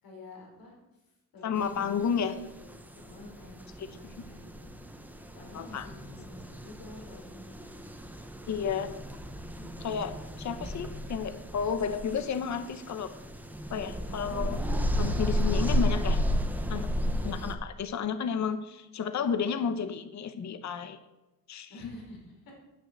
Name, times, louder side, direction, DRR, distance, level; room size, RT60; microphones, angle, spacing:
voice 1, 0.0-1.0 1.3-2.3 2.5-4.7 5.3-7.8 9.5-9.9 17.0-17.4 21.7-22.6, left 2 dB, 75° left, -1 dB, 4.9 m, -49 dB
voice 2, 1.4-2.3 3.8-3.9 5.5-5.9 8.5-8.9 9.8-13.1 13.7-14.6 15.0-16.2 16.7-16.9 17.2-21.0 21.5-21.7, left 6 dB, 50° left, 11 dB, 1.0 m, -32 dB
sound 1, 1.6-17.5, equal, 5° right, 1.1 m, -33 dB
10.0 x 9.0 x 8.1 m, 1.0 s
cardioid pair, 130°, 35 cm